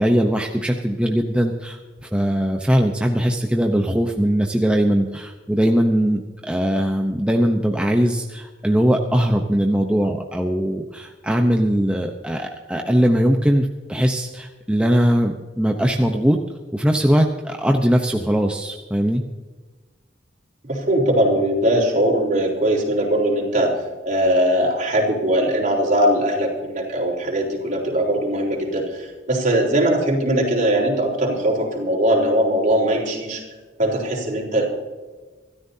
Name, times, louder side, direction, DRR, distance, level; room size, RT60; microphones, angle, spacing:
voice 1, 0.0-16.4 16.7-19.2, equal, 5° right, 2 dB, 0.8 m, -20 dB
voice 2, 20.6-23.7 24.1-33.4 33.8-34.7, right 1 dB, 45° right, -1 dB, 4.0 m, -20 dB
26.0 x 13.5 x 2.8 m, 1.3 s
head